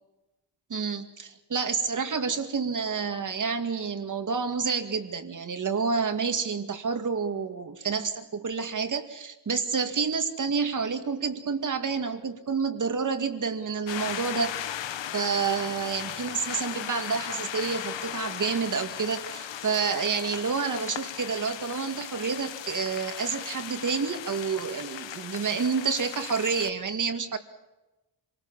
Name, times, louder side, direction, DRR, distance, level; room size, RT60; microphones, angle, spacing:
voice 1, 0.7-14.8 15.1-27.4, right 5 dB, 45° right, 7 dB, 2.3 m, -29 dB
sound 1, 13.9-26.7, left 10 dB, 75° left, 1.3 m, -37 dB
26.5 x 19.5 x 7.4 m, 1.1 s
cardioid pair, 95°, 44 cm